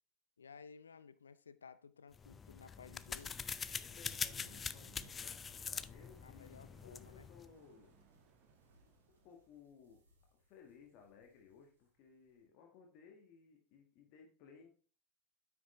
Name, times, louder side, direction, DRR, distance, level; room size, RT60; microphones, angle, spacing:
voice 1, 0.4-3.4 6.2-7.3, left 6 dB, 80° left, 0.5 m, -56 dB
sound 1, 2.1-7.5, left 6 dB, 25° left, 0.4 m, -44 dB
sound 2, 3.0-9.7, right 5 dB, 50° right, 1.7 m, -68 dB
sound 3, 3.1-3.3 3.9-12.4, right 2 dB, 80° right, 2.5 m, -67 dB
voice 2, 3.7-8.0 9.2-10.0 10.3-14.7, left 6 dB, 55° left, 1.5 m, -61 dB
9.4 x 6.0 x 3.2 m
figure-of-eight pair, 80°, 0 cm